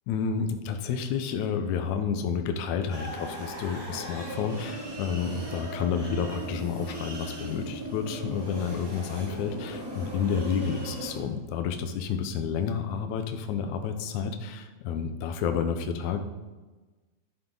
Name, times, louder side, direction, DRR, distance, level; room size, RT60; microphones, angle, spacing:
voice 1, 0.1-16.2, left 6 dB, 75° left, 7 dB, 1.8 m, -30 dB
sound 1, 2.9-11.2, right 1 dB, 10° right, 1.2 m, -38 dB
11.0 x 9.4 x 3.9 m, 1.2 s
omnidirectional pair, 4.2 m